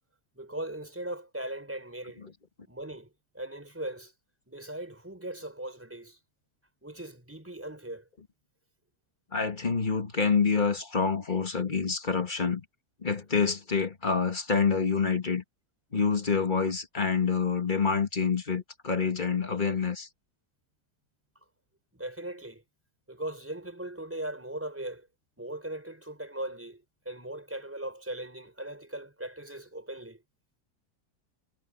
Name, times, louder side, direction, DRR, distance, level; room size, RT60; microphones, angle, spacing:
voice 1, 0.3-2.3 2.7-4.1 4.5-6.2 6.8-8.1 21.9-22.6 23.1-25.1 25.4-30.2, right 1 dB, 10° right, 5.0 m, -39 dB
voice 2, 9.3-12.6 13.0-15.4 15.9-20.1, left 5 dB, 30° left, 1.7 m, -27 dB
omnidirectional pair, 1.7 m